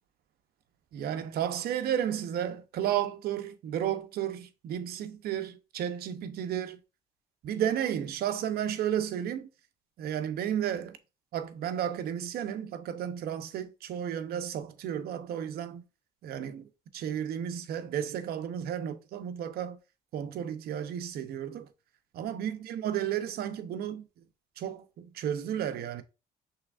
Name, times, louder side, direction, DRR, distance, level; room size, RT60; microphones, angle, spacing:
voice 1, 0.9-6.8 7.4-9.5 10.0-11.0 11.3-15.8 16.2-19.8 20.1-21.7 22.1-24.1 24.6-26.0, right 10 dB, 65° right, 0.7 m, -33 dB
5.7 x 3.5 x 2.4 m
cardioid pair, 110°, 17 cm